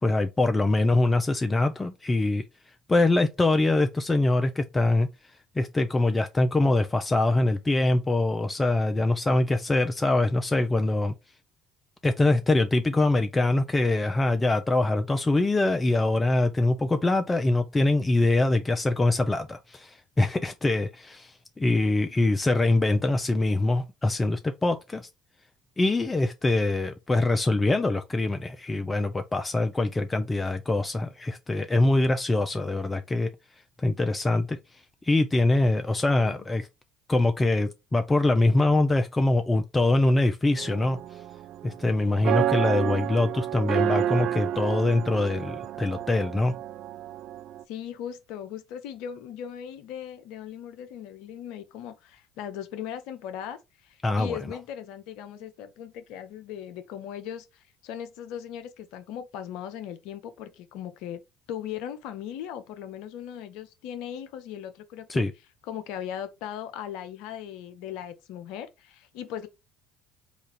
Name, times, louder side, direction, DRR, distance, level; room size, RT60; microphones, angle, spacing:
voice 1, 0.0-2.5 2.9-5.1 5.6-11.1 12.0-25.1 25.8-33.3 33.8-34.6 35.0-36.7 37.1-41.0 41.6-46.5 54.0-54.4 65.1-65.3, left 2 dB, 20° left, 0.5 m, -24 dB
sound 1, 40.6-47.6, right 11 dB, 55° right, 0.4 m, -30 dB
voice 2, 47.7-61.2 61.5-65.2 65.7-69.5, left 9 dB, 65° left, 0.6 m, -38 dB
4.0 x 2.5 x 4.0 m
hypercardioid pair, 60°, 0 cm